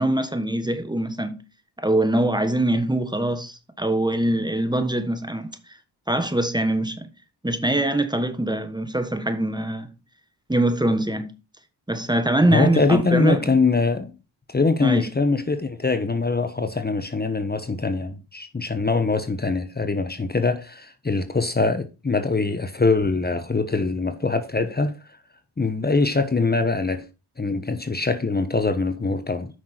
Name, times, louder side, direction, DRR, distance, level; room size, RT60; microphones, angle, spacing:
voice 1, 0.0-1.4 1.8-5.5 6.1-7.1 7.4-9.9 10.5-11.3 11.9-13.6 14.8-15.1, right 1 dB, 10° right, 1.3 m, -23 dB
voice 2, 12.5-14.1 14.5-24.9 25.6-27.1 27.4-29.5, left 3 dB, 25° left, 1.1 m, -23 dB
9.3 x 6.0 x 4.4 m
cardioid pair, 55°, 41 cm